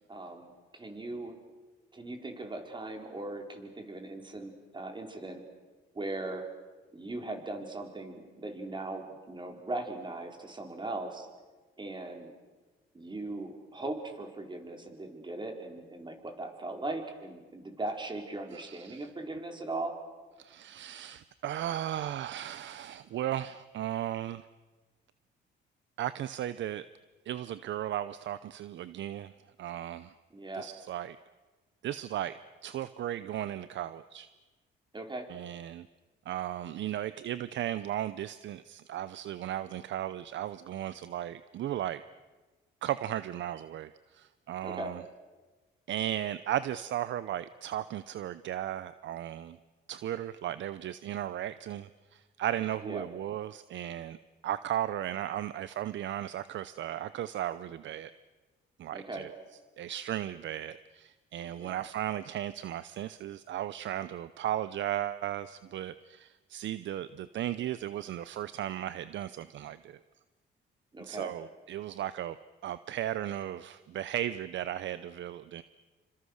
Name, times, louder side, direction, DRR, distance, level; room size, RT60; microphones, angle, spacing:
voice 1, 0.1-1.4 1.9-5.4 5.9-6.5 6.9-11.3 11.8-12.3 12.9-20.0 30.3-30.7 34.9-35.3 44.6-44.9 52.8-53.1 58.9-59.3 61.6-61.8 70.9-71.3, right 2 dB, 25° right, 3 dB, 4.5 m, -39 dB
voice 2, 18.5-19.0 20.4-24.4 26.0-26.9 27.3-29.3 29.6-30.1 30.6-31.2 31.8-34.3 35.3-35.9 36.3-42.0 42.8-45.0 45.9-49.6 49.9-54.2 54.4-58.1 58.8-59.3 59.8-70.0 71.0-72.4 72.6-75.6, right 12 dB, 70° right, 15 dB, 0.7 m, -36 dB
28.0 x 25.5 x 6.5 m, 1.3 s
cardioid pair, 90°, 20 cm